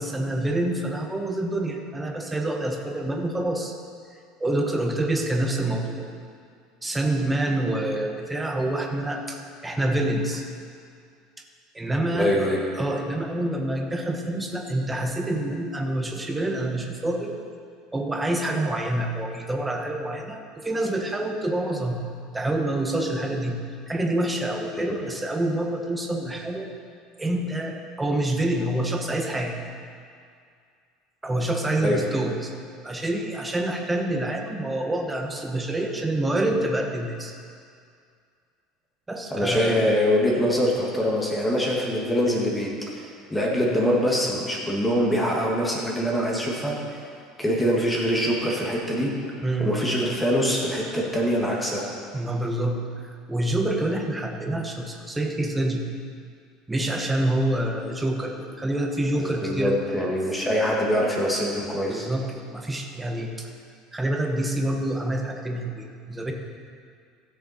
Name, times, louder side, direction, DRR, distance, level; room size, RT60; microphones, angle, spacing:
voice 1, 0.0-3.8 4.4-6.1 6.8-10.4 11.7-12.3 12.8-17.4 17.9-22.0 22.3-23.6 23.9-26.7 27.2-29.6 31.2-32.5 32.8-37.3 39.1-39.7 49.4-49.8 52.1-52.9 53.3-55.9 56.7-59.7 61.9-63.5 63.9-66.3, right 1 dB, 10° right, 2 dB, 1.1 m, -27 dB
voice 2, 12.1-12.6 31.8-32.0 39.3-47.1 47.4-49.1 49.6-51.8 59.2-62.1, equal, 10° left, -2 dB, 1.8 m, -24 dB
15.5 x 6.7 x 4.3 m, 2.3 s
supercardioid pair, 125°, 0 cm